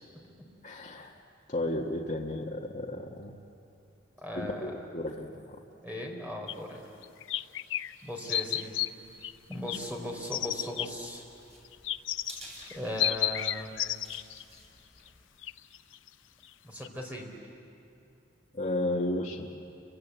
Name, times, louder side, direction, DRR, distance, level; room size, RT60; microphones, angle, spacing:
voice 1, 0.6-1.1 1.5-3.3 4.4-5.6 18.5-19.5, left 1 dB, 40° left, -2 dB, 1.6 m, -33 dB
voice 2, 4.2-4.7 5.8-6.9 8.0-8.9 9.5-11.3 12.7-13.8 16.6-17.3, left 1 dB, 10° right, 0 dB, 3.8 m, -38 dB
sound 1, 6.5-6.6 7.0-7.9 8.3-8.9 9.2-9.8 10.3-10.9 11.6-14.5 15.1-15.2 15.4-16.1 16.4-16.5 16.8-16.9, left 12 dB, 85° left, 0.6 m, -32 dB
sound 2, 9.0-15.2, right 1 dB, 35° right, 7.0 m, -53 dB
30.0 x 24.0 x 8.3 m, 2.6 s
head